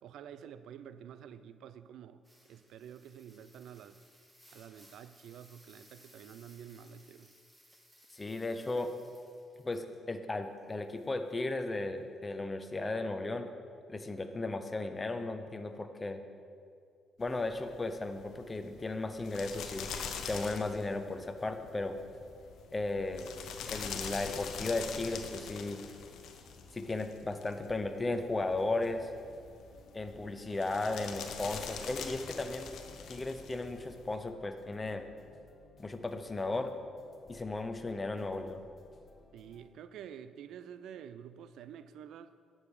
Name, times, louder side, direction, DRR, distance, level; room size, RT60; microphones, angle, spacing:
voice 1, 0.0-4.0 4.5-7.3 39.3-42.4, right 9 dB, 80° right, 13 dB, 0.4 m, -49 dB
sound 1, 2.2-10.1 10.4-11.7 12.3-12.4, equal, 5° right, 1.5 m, -62 dB
voice 2, 8.1-8.9 9.6-13.5 13.9-16.2 17.2-19.9 20.2-22.0 22.7-23.3 23.7-25.8 26.7-29.1 29.9-32.7 33.1-35.1 35.8-36.7 37.3-38.6, left 2 dB, 25° left, 8 dB, 0.7 m, -35 dB
sound 2, 17.2-34.2, left 6 dB, 75° left, 0.8 m, -45 dB
sound 3, 20.5-39.7, left 2 dB, 40° left, 1.1 m, -60 dB
9.5 x 7.2 x 4.9 m, 2.3 s
cardioid pair, 90°, 0 cm